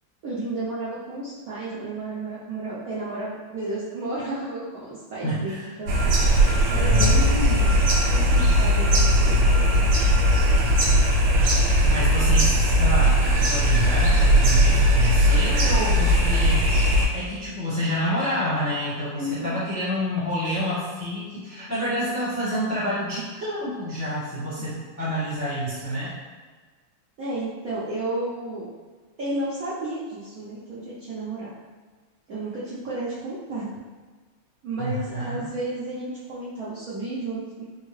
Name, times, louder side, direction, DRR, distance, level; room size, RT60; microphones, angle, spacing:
voice 1, 0.2-6.3 6.7-7.8 8.1-9.4 19.2-19.6 27.2-28.7 29.2-31.5 32.3-33.8 34.6-37.6, right 1 dB, 65° right, -9 dB, 0.9 m, -32 dB
voice 2, 5.2-5.7 6.8-7.2 11.4-13.2 13.5-16.9 17.1-26.1 34.8-35.5, equal, 15° left, -11 dB, 0.7 m, -28 dB
sound 1, 5.9-17.1, equal, 85° right, 1.6 m, -19 dB
4.4 x 2.1 x 3.1 m, 1.4 s
omnidirectional pair, 2.4 m